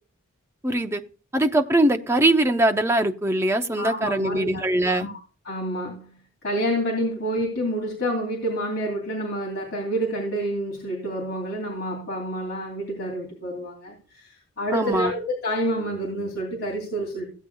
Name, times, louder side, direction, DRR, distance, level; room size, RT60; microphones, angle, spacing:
voice 1, 0.6-1.0 1.3-5.1 14.7-15.1, right 1 dB, 10° right, 5 dB, 0.7 m, -21 dB
voice 2, 3.8-4.6 4.9-5.2 5.4-6.2 6.4-17.3, equal, 50° left, -2 dB, 2.9 m, -28 dB
16.0 x 8.1 x 2.3 m, 0.37 s
head